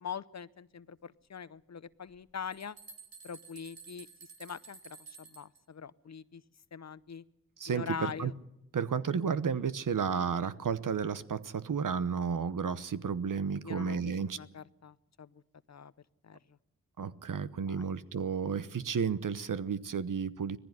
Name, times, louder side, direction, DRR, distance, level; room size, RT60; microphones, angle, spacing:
voice 1, 0.0-2.8 3.2-4.1 4.4-6.4 6.7-7.2 7.7-8.3 13.6-15.3 15.7-15.9 16.3-16.4 17.7-17.8, left 6 dB, 50° left, 18 dB, 0.7 m, -43 dB
sound 1, 2.1-2.2 2.5-5.6, right 5 dB, 80° right, 2.8 m, -52 dB
voice 2, 7.6-8.3 8.7-14.4 17.0-20.6, right 6 dB, 60° right, 14 dB, 1.0 m, -32 dB
18.5 x 15.0 x 9.6 m, 0.86 s
cardioid pair, 45°, 35 cm